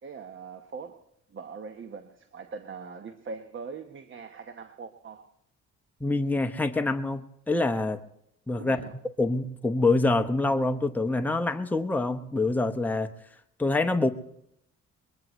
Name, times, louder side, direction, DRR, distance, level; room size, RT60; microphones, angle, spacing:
voice 1, 0.0-1.0 1.3-5.3 8.6-8.9, right 5 dB, 40° right, 1.1 m, -41 dB
voice 2, 6.0-7.2 7.5-8.0 8.5-8.8 9.2-13.1 13.6-14.1, left 2 dB, 5° left, 0.9 m, -25 dB
22.0 x 21.5 x 3.1 m
cardioid pair, 90°, 30 cm